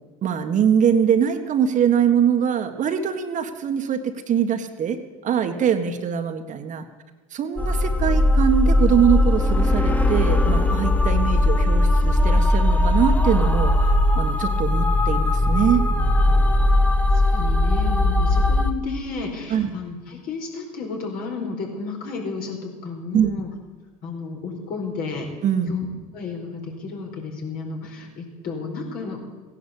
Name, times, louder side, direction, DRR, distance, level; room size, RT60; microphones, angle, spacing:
voice 1, 0.2-5.0 5.2-6.8 7.3-15.9 19.5-19.8 23.1-23.3 25.4-25.7, right 8 dB, 40° right, 7 dB, 1.5 m, -22 dB
sound 1, 7.6-18.7, left 1 dB, 10° left, 1.3 m, -19 dB
voice 2, 17.3-23.5 24.0-25.3 25.7-25.9 26.1-29.2, left 4 dB, 55° left, 1 dB, 4.8 m, -32 dB
16.0 x 11.0 x 8.3 m, 1.3 s
hypercardioid pair, 90°, 19 cm